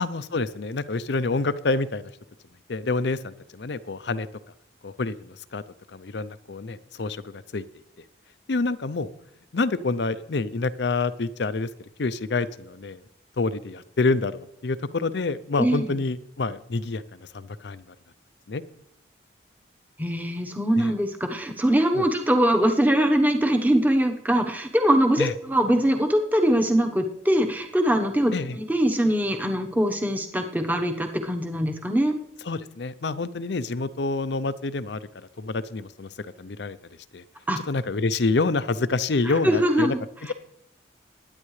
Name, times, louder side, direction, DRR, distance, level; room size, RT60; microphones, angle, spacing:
voice 1, 0.0-2.1 2.7-4.3 4.8-5.6 5.9-7.6 8.5-9.1 9.5-11.7 12.0-13.0 13.4-17.0 17.3-17.8 18.5-18.6 20.8-20.9 21.9-22.1 25.2-25.3 28.3-28.6 32.5-35.0 35.4-36.1 36.4-36.8 37.1-37.2 37.7-39.9, left 3 dB, 65° left, 14 dB, 0.6 m, -27 dB
voice 2, 15.6-16.0 20.0-32.2 37.5-37.6 39.2-40.0 40.3-40.4, right 1 dB, 10° right, 4 dB, 1.0 m, -22 dB
21.0 x 9.9 x 3.2 m, 0.79 s
head